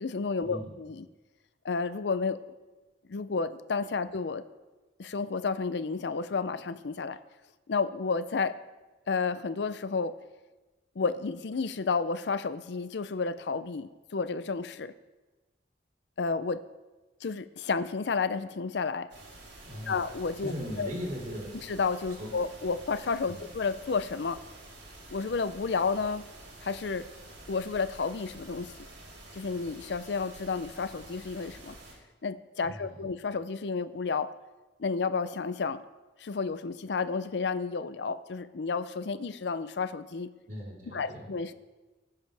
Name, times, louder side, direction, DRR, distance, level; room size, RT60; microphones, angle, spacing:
voice 1, 0.0-1.1 1.6-2.4 3.1-4.4 5.0-7.2 7.7-8.5 9.1-10.1 11.0-14.9 16.2-16.6 17.2-19.1 19.9-20.9 21.6-24.4 25.1-26.2 26.6-27.1 27.5-28.7 29.3-31.8 32.2-34.3 34.8-35.8 36.2-40.3 40.8-41.5, left 4 dB, 65° left, 13 dB, 0.5 m, -31 dB
sound 1, 19.1-31.9, right 2 dB, 80° right, 5.1 m, -49 dB
voice 2, 19.6-20.0 20.4-21.6 22.2-22.3 23.3-23.5 32.7-33.0 40.5-41.3, equal, 45° right, -4 dB, 3.9 m, -38 dB
19.5 x 10.5 x 3.4 m, 1.2 s
head